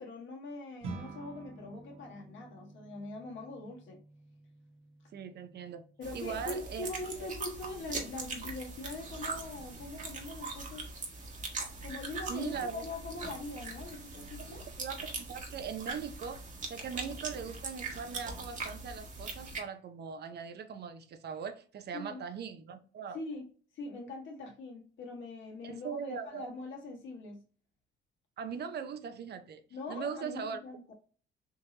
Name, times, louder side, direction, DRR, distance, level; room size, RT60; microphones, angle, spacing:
voice 1, 0.0-4.0 6.0-10.9 11.8-14.6 21.9-22.2 23.1-23.5 23.7-27.4 29.7-30.9, left 2 dB, 70° left, 1.4 m, -42 dB
sound 1, 0.8-10.3, right 3 dB, 85° right, 1.0 m, -51 dB
voice 2, 5.1-5.8 6.1-6.9 12.3-12.8 14.8-23.2 25.6-26.5 28.4-29.6 29.9-30.6, right 6 dB, 55° right, 0.6 m, -40 dB
sound 2, 6.0-19.6, right 3 dB, 40° right, 1.1 m, -41 dB
3.6 x 2.9 x 2.9 m
cardioid pair, 90°, 20 cm